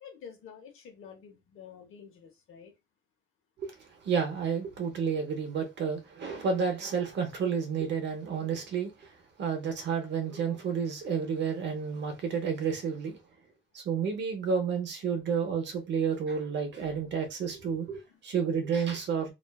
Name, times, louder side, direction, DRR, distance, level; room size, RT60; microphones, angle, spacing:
voice 1, 0.0-2.7, left 7 dB, 80° left, 0.8 m, -49 dB
voice 2, 3.6-9.1 9.4-13.2 13.7-19.3, right 6 dB, 60° right, 0.7 m, -31 dB
2.4 x 2.3 x 2.2 m
cardioid pair, 140°, 21 cm